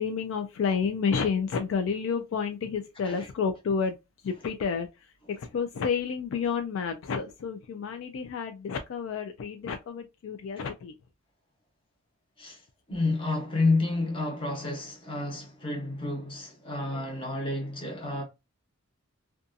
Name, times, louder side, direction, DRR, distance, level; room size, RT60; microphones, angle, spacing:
voice 1, 0.0-4.0 4.2-11.0, left 6 dB, 60° left, 0.3 m, -30 dB
voice 2, 12.9-18.2, left 2 dB, 25° left, 0.9 m, -30 dB
2.6 x 2.3 x 2.5 m
head